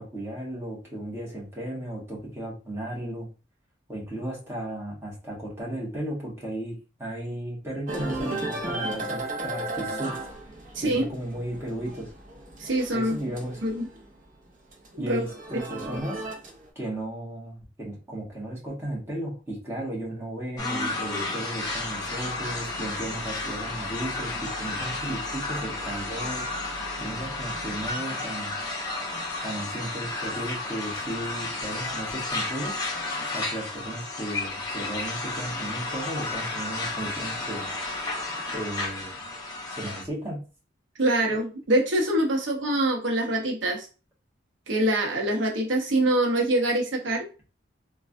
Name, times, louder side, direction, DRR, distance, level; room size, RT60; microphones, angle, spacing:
voice 1, 0.0-3.3 3.9-10.1 10.8-12.1 12.9-13.6 15.0-16.2 16.7-26.5 27.0-28.5 29.4-32.8 33.3-37.7 38.5-39.2 39.7-40.4, right 1 dB, 15° right, -5 dB, 1.1 m, -35 dB
sound 1, 7.9-14.1 14.5-16.7, right 2 dB, 45° right, 0.7 m, -35 dB
voice 2, 10.7-11.1 12.6-13.2 13.6-13.9 14.9-15.2 15.5-15.6 41.0-43.9 44.7-47.2, right 1 dB, 85° right, 0 dB, 0.7 m, -24 dB
sound 2, 20.6-40.0, left 2 dB, 20° left, 0.6 m, -32 dB
sound 3, 21.6-27.9, left 3 dB, 70° left, 0.5 m, -41 dB
3.2 x 2.2 x 2.5 m, 0.34 s
head